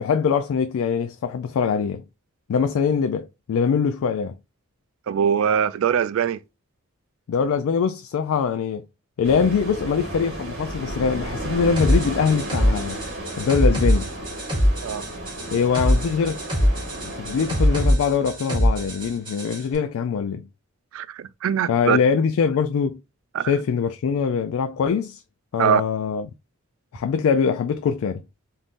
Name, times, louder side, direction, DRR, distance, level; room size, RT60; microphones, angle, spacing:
voice 1, 0.0-2.0 2.5-4.4 7.3-8.9 9.2-13.0 13.4-14.1 15.5-16.4 16.7-20.5 21.7-23.0 23.4-25.2 25.5-26.3 26.9-28.2, left 6 dB, 85° left, 0.3 m, -23 dB
voice 2, 5.1-6.4 14.8-15.0 20.9-22.0 23.3-23.5 25.6-25.8, right 8 dB, 75° right, 0.3 m, -22 dB
sound 1, 9.2-17.9, right 1 dB, 50° right, 1.3 m, -33 dB
sound 2, 11.8-19.6, equal, 25° right, 1.4 m, -23 dB
3.6 x 2.6 x 2.4 m
head